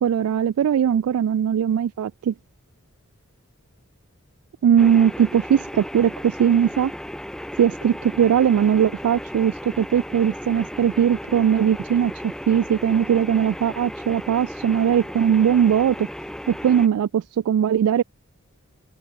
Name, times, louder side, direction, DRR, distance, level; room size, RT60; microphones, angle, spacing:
voice 1, 0.0-2.3 4.6-6.9 7.6-16.1 16.5-18.0, right 8 dB, 90° right, 0.3 m, -20 dB
Washing Machine Empty and Spin (contact mic), 4.8-16.9, equal, 5° left, 1.1 m, -35 dB
head